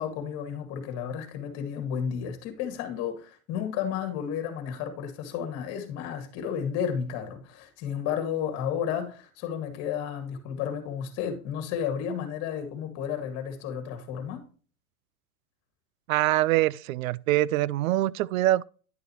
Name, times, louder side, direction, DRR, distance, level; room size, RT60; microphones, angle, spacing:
voice 1, 0.0-14.5, left 8 dB, 35° left, 2.0 m, -32 dB
voice 2, 16.1-18.6, right 16 dB, 70° right, 0.5 m, -24 dB
10.5 x 6.5 x 3.0 m
supercardioid pair, 145°, 43 cm